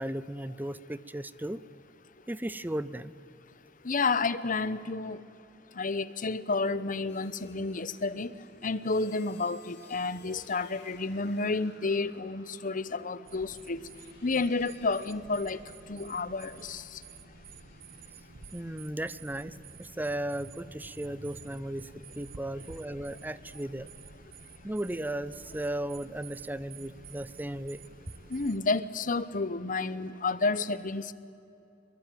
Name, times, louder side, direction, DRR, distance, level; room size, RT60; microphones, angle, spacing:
voice 1, 0.0-1.6 2.3-3.1 18.5-21.9 22.2-23.9 24.6-27.8, right 1 dB, 10° right, 17 dB, 0.6 m, -36 dB
voice 2, 3.8-5.2 5.8-8.3 8.6-13.8 14.2-15.6 15.9-17.0 28.3-31.1, left 3 dB, 45° left, 16 dB, 0.9 m, -30 dB
sound 1, 7.1-18.9, left 4 dB, 65° left, 3.5 m, -59 dB
sound 2, 13.3-28.6, right 5 dB, 50° right, 0.9 m, -51 dB
23.5 x 22.0 x 9.2 m, 2.8 s
head